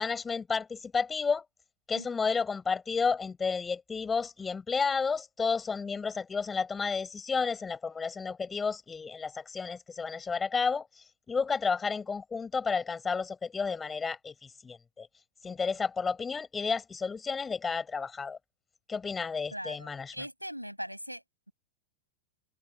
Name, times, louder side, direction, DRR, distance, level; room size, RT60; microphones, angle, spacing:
voice 1, 0.0-1.4 1.9-10.9 11.3-14.3 14.6-15.1 15.4-18.4 18.9-20.1, left 5 dB, 15° left, 5.9 m, -31 dB
voice 2, 1.9-2.2 19.5-21.5, equal, 90° right, 6.2 m, -41 dB
figure-of-eight pair, 90°, 0 cm